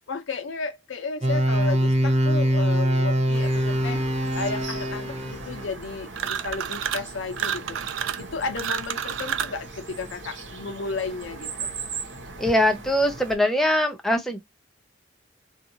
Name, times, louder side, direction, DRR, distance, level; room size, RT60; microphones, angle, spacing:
voice 1, 0.1-4.0 4.3-11.7, left 4 dB, 85° left, 0.6 m, -33 dB
sound 1, 1.2-5.7, right 1 dB, 35° right, 0.7 m, -23 dB
sound 2, 3.3-13.4, right 4 dB, 70° right, 1.0 m, -39 dB
sound 3, 6.1-7.1 7.4-9.6, right 9 dB, 90° right, 0.4 m, -29 dB
voice 2, 12.4-14.4, left 1 dB, ahead, 0.4 m, -22 dB
2.5 x 2.4 x 2.7 m
head